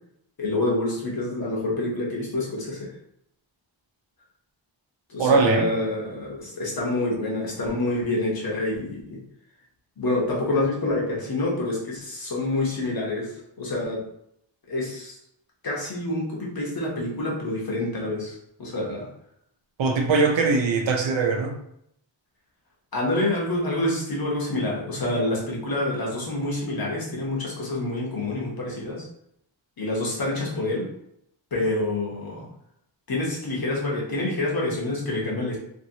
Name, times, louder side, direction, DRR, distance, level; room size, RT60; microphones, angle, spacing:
voice 1, 0.4-2.9 5.1-9.2 10.0-13.3 13.6-14.0 14.7-15.2 15.6-19.1 22.9-29.0 29.8-30.9 31.5-32.5 33.1-35.6, left 2 dB, 50° left, -3 dB, 0.9 m, -27 dB
voice 2, 5.2-5.8 19.8-21.6, right 4 dB, 70° right, 3 dB, 0.6 m, -21 dB
2.8 x 2.6 x 2.7 m, 0.74 s
wide cardioid pair, 145°, 47 cm